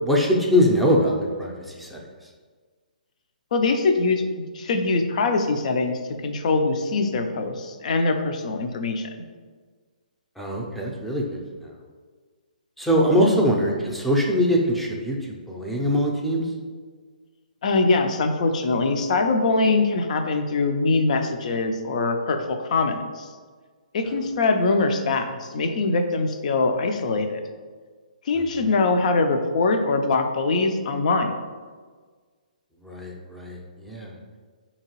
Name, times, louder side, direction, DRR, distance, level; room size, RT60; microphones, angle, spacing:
voice 1, 0.0-1.1 1.4-1.5 1.8-2.0 10.4-11.2 11.6-11.7 12.8-16.5 28.5-28.7 32.8-34.1, equal, ahead, -2 dB, 0.5 m, -22 dB
voice 2, 3.5-9.1 13.1-13.3 17.6-23.3 23.9-27.4 28.3-31.4, left 3 dB, 55° left, 6 dB, 0.5 m, -23 dB
4.5 x 2.8 x 2.9 m, 1.5 s
hypercardioid pair, 140°, 5 cm